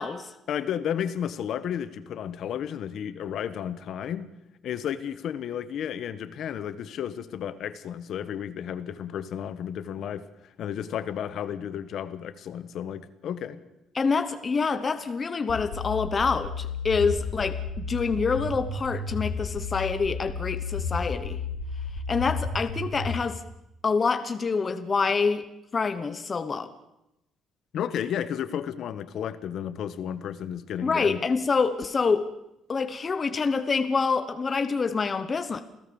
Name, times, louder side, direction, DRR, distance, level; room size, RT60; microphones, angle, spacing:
voice 1, 0.5-4.3 4.6-10.2 10.6-13.6 27.7-31.2, left 9 dB, 55° left, 13 dB, 1.3 m, -32 dB
voice 2, 13.9-21.4 22.1-23.4 23.8-25.4 25.7-26.7 30.8-32.3 32.7-35.6, left 4 dB, 25° left, 10 dB, 1.0 m, -26 dB
sound 1, 15.5-23.2, left 4 dB, 85° left, 3.4 m, -32 dB
28.0 x 17.0 x 7.1 m, 0.89 s
cardioid pair, 175°, 0 cm